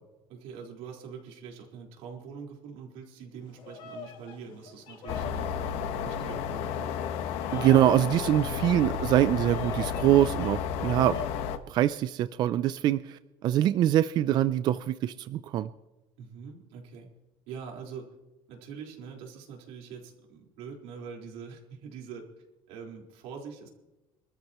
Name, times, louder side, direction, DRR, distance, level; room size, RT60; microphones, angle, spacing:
voice 1, 0.3-6.9 7.5-7.7 8.5-8.6 16.2-17.1 17.5-18.1 18.5-22.2 22.7-23.7, right 6 dB, 90° right, -1 dB, 4.3 m, -44 dB
Bird vocalization bird call bird song, 3.4-11.5, left 4 dB, 50° left, 2.1 m, -45 dB
sound 1, 5.1-11.6, left 7 dB, 75° left, 1.2 m, -32 dB
voice 2, 7.5-11.2 11.7-15.7, right 12 dB, 45° right, 13 dB, 0.4 m, -24 dB
25.5 x 13.5 x 3.0 m, 1.0 s
cardioid pair, 170°, 11 cm